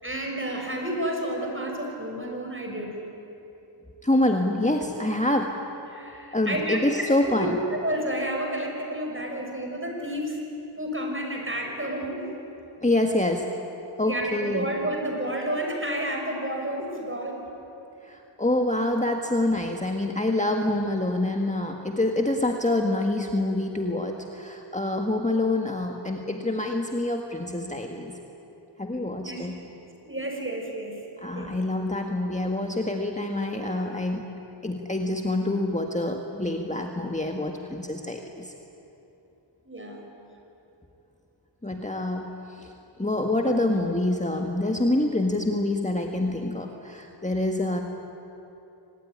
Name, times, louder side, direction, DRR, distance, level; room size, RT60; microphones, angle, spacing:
voice 1, 0.0-2.9 5.9-10.4 10.8-12.2 14.1-17.4 29.2-29.4 30.0-31.0 31.3-31.5 39.6-40.0, right 1 dB, 25° right, 1 dB, 6.0 m, -30 dB
voice 2, 4.0-5.5 6.3-7.6 12.8-13.5 14.0-14.7 18.0-28.2 28.8-29.5 31.2-34.3 34.6-38.5 41.6-42.7 43.0-47.8, left 1 dB, 15° left, 2 dB, 1.7 m, -26 dB
24.5 x 19.5 x 10.0 m, 3.0 s
wide cardioid pair, 60°, 48 cm